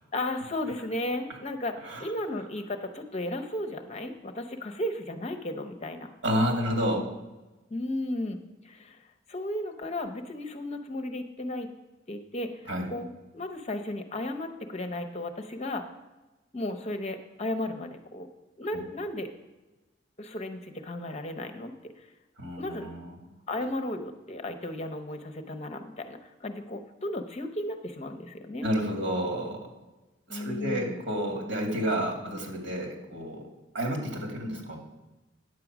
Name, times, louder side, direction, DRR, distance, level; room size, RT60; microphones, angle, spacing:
voice 1, 0.1-6.1 7.7-9.0 9.3-11.7 12.1-12.5 12.9-15.8 16.5-18.3 18.6-19.3 20.2-22.1 22.6-22.9 23.5-28.7 30.3-31.0, left 1 dB, 35° left, 7 dB, 0.9 m, -34 dB
voice 2, 6.2-7.0 12.7-12.9 18.7-18.8 22.4-23.3 28.6-29.6 30.3-33.4 33.7-34.8, equal, 75° right, 2 dB, 2.4 m, -30 dB
9.5 x 7.6 x 6.0 m, 1.1 s
head